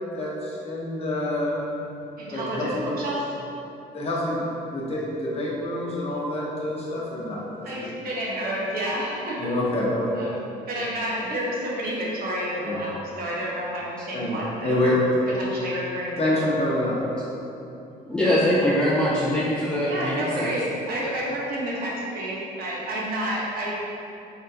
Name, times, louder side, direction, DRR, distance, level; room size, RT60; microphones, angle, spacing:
voice 1, 0.1-1.6 2.3-2.8 3.9-4.5 4.7-7.4 9.4-10.1 12.6-12.8 14.1-15.0 16.2-17.0, left 1 dB, 35° left, -5 dB, 0.9 m, -27 dB
voice 2, 2.2-3.4 7.6-9.5 10.1-10.4 10.7-15.0 15.4-16.5 18.5-19.0 19.9-23.7, right 1 dB, 60° right, -5 dB, 0.9 m, -30 dB
voice 3, 18.1-20.5, left 1 dB, 5° left, -8 dB, 0.4 m, -22 dB
3.6 x 3.5 x 2.7 m, 2.9 s
cardioid pair, 110°, 17 cm